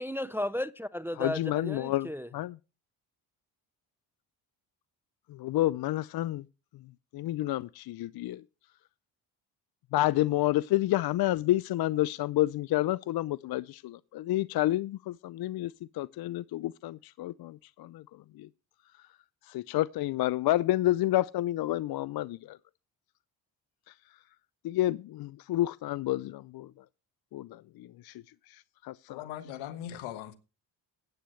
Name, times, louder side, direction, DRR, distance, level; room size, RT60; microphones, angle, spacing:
voice 1, 0.0-2.3, left 1 dB, 5° right, 0.4 m, -34 dB
voice 2, 1.1-2.6 5.3-6.5 6.7-6.8 7.1-8.4 9.9-18.5 19.4-22.6 23.9-24.0 24.6-26.7 27.3-29.2, left 15 dB, 55° left, 0.5 m, -30 dB
voice 3, 29.1-30.4, left 11 dB, 85° left, 1.5 m, -39 dB
15.5 x 9.3 x 3.1 m
supercardioid pair, 70°, 46 cm